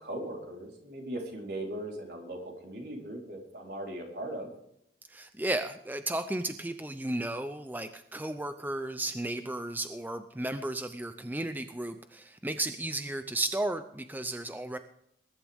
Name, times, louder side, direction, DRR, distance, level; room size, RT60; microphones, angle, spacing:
voice 1, 0.0-4.5, right 1 dB, 60° right, 0 dB, 4.1 m, -39 dB
voice 2, 5.1-14.8, right 1 dB, 10° right, 9 dB, 0.6 m, -34 dB
20.5 x 11.5 x 3.6 m, 0.74 s
head